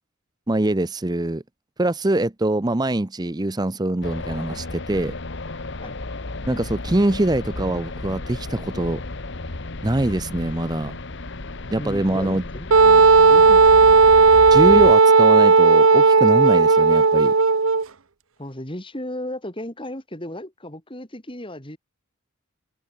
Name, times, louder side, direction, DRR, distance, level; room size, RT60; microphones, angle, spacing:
voice 1, 0.5-1.4 1.8-5.1 6.5-9.0 9.8-11.0 11.7-12.4 14.5-17.3, right 1 dB, 20° right, 0.7 m, -23 dB
sound 1, 4.0-14.9, left 2 dB, 60° left, 1.4 m, -33 dB
voice 2, 11.7-14.0 18.4-21.8, left 1 dB, 25° left, 4.7 m, -35 dB
Wind instrument woodwind instrument, 12.7-17.8, right 4 dB, 85° right, 1.1 m, -13 dB
head